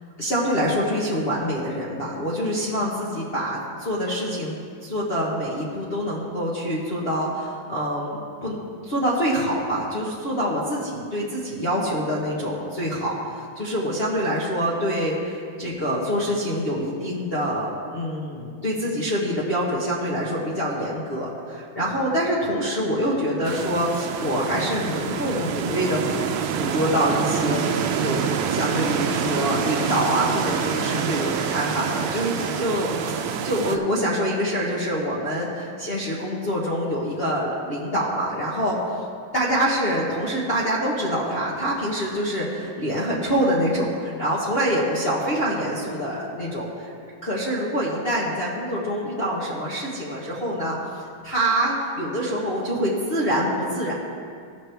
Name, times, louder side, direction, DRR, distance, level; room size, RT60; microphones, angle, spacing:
voice 1, 0.2-26.2 26.5-28.2 28.5-38.8 39.3-50.8 51.2-53.9, equal, 35° left, -8 dB, 1.1 m, -25 dB
sound 1, 23.4-33.8, right 7 dB, 80° right, 1.4 m, -26 dB
sound 2, 27.5-32.6, right 4 dB, 60° right, 1.3 m, -39 dB
16.0 x 5.9 x 3.4 m, 2.2 s
omnidirectional pair, 2.2 m